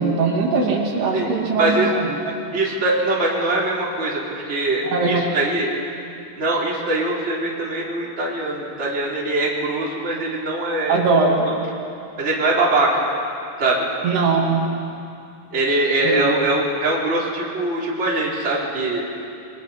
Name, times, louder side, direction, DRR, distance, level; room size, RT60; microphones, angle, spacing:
voice 1, 0.0-2.2 4.8-5.2 10.9-11.5 14.0-14.7 16.0-16.3, right 4 dB, 75° right, -1 dB, 4.5 m, -20 dB
voice 2, 1.1-1.9 2.5-5.7 6.4-11.0 12.2-13.0 13.6-13.9 15.5-19.1, right 2 dB, 15° right, -4 dB, 3.3 m, -22 dB
27.5 x 23.0 x 5.5 m, 2.6 s
omnidirectional pair, 4.7 m